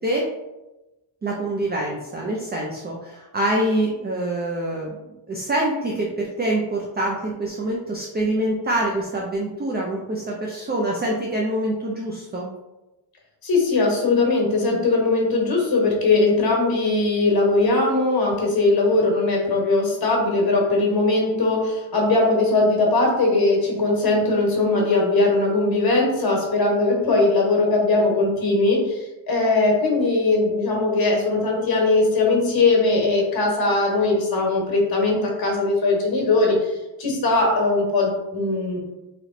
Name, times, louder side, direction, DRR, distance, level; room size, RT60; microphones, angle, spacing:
voice 1, 1.2-5.0 5.3-12.5 14.7-14.8, right 1 dB, 25° right, -2 dB, 0.4 m, -25 dB
voice 2, 13.4-29.0 29.3-38.8, left 2 dB, 55° left, -1 dB, 1.3 m, -20 dB
3.2 x 3.1 x 3.7 m, 1.0 s
wide cardioid pair, 135°, 45 cm